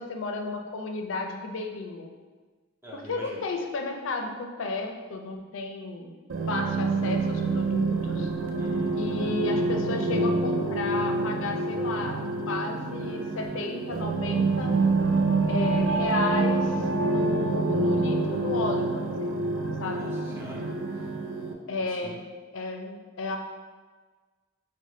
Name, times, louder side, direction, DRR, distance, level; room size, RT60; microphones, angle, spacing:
voice 1, 0.0-2.1 2.9-6.1 6.5-8.3 8.9-14.8 15.5-19.4 19.8-20.2 21.7-22.2 22.5-23.4, left 3 dB, 75° left, 4 dB, 0.5 m, -33 dB
voice 2, 2.8-3.4 8.6-8.9 19.8-21.1 21.9-22.2, right 1 dB, 10° right, -6 dB, 0.7 m, -44 dB
sound 1, 6.3-21.5, right 3 dB, 70° right, 0.4 m, -27 dB
5.3 x 2.1 x 3.1 m, 1.4 s
head